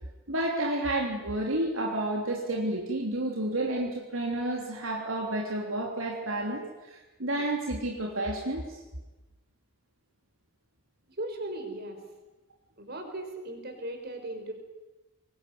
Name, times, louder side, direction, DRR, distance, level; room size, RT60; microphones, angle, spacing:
voice 1, 0.3-8.8, right 1 dB, 65° right, 0 dB, 3.3 m, -30 dB
voice 2, 11.1-12.0 12.8-14.5, right 1 dB, 45° right, 5 dB, 5.2 m, -37 dB
24.5 x 22.0 x 9.5 m, 1.1 s
head